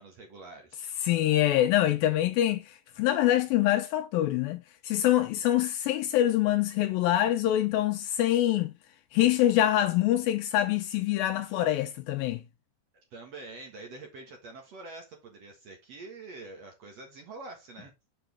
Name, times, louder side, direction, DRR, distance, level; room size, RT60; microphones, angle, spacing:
voice 1, 0.0-0.9 13.1-17.9, right 3 dB, 55° right, 2.1 m, -45 dB
voice 2, 1.0-8.7 9.1-12.4, left 13 dB, 80° left, 2.2 m, -25 dB
6.9 x 6.0 x 3.4 m
omnidirectional pair, 4.6 m